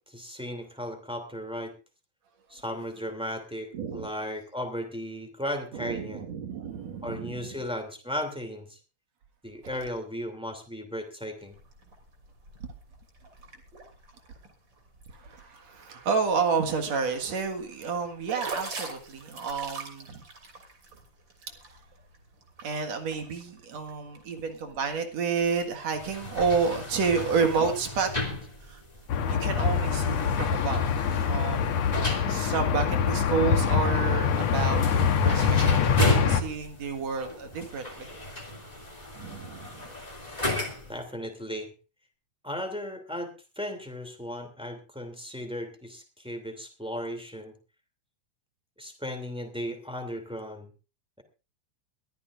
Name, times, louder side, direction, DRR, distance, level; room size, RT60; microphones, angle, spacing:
voice 1, 0.1-1.7 2.5-6.2 7.0-8.8 9.4-11.5 40.9-41.7 42.4-47.5 48.8-50.7, equal, ahead, 5 dB, 2.4 m, -36 dB
voice 2, 3.7-4.1 5.7-7.6 12.6-12.7 15.1-20.2 22.6-28.8 29.3-30.8 31.2-34.8 35.2-35.8 36.2-38.1 39.1-39.9, right 5 dB, 65° right, 5 dB, 2.9 m, -30 dB
sound 1, 11.4-27.3, right 3 dB, 40° right, 3.6 m, -46 dB
sound 2, 25.9-41.0, left 2 dB, 15° left, 2.6 m, -34 dB
sound 3, 29.1-36.4, left 6 dB, 65° left, 2.3 m, -24 dB
22.5 x 14.0 x 2.6 m, 0.31 s
omnidirectional pair, 3.3 m